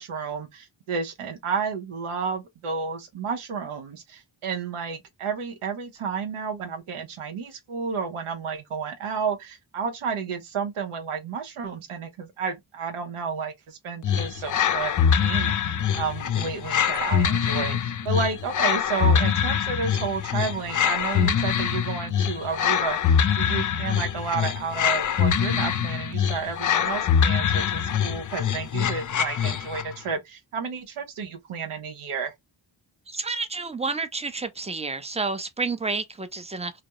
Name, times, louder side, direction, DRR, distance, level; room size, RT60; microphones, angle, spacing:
voice 1, 0.0-32.3, right 5 dB, 85° right, 0.7 m, -31 dB
sound 1, 14.0-30.0, left 8 dB, 40° left, 0.4 m, -24 dB
voice 2, 33.1-36.7, right 3 dB, 15° right, 0.5 m, -30 dB
2.2 x 2.0 x 2.8 m
cardioid pair, 40°, 49 cm